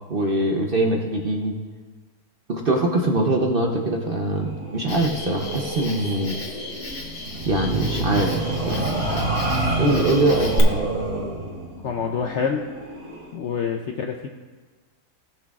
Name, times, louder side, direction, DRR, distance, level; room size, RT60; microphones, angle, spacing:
voice 1, 0.1-1.5 2.5-6.4 7.5-8.4 8.6-9.4 9.8-10.9, right 1 dB, 50° right, 1 dB, 0.7 m, -23 dB
sound 1, 4.4-13.3, right 2 dB, 85° right, 3.0 m, -29 dB
Cricket, 4.9-10.6, left 2 dB, 35° left, 1.1 m, -34 dB
voice 2, 11.8-12.7 13.3-14.3, left 6 dB, 70° left, 2 dB, 0.7 m, -26 dB
18.0 x 6.1 x 2.4 m, 1.3 s
omnidirectional pair, 1.7 m